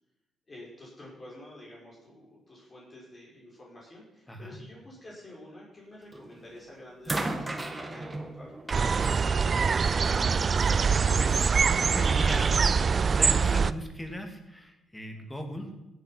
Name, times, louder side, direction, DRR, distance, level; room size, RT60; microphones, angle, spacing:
voice 1, 0.5-10.1, left 1 dB, 30° left, -4 dB, 5.1 m, -49 dB
voice 2, 4.3-4.6 10.5-11.5 11.7-12.5 13.1-15.7, equal, 10° left, 4 dB, 2.5 m, -38 dB
sound 1, 6.1-6.5 7.0-10.3 11.3-11.4, right 2 dB, 20° right, 1.6 m, -36 dB
sound 2, 8.7-13.7, right 5 dB, 40° right, 0.4 m, -24 dB
16.5 x 8.0 x 5.8 m, 0.99 s
cardioid pair, 90°, 0 cm